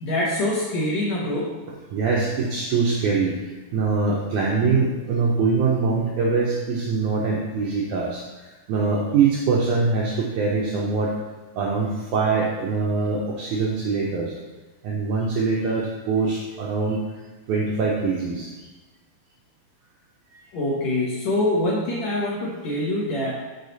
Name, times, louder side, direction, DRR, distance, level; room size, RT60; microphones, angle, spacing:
voice 1, 0.0-1.5 20.5-23.3, left 1 dB, 65° left, -5 dB, 1.8 m, -24 dB
voice 2, 1.9-3.3 3.7-8.2 8.7-11.1 11.6-14.3 14.8-17.0 17.5-18.5 20.3-20.4, right 4 dB, 80° right, -3 dB, 1.7 m, -23 dB
6.6 x 6.4 x 4.0 m, 1.2 s
omnidirectional pair, 4.4 m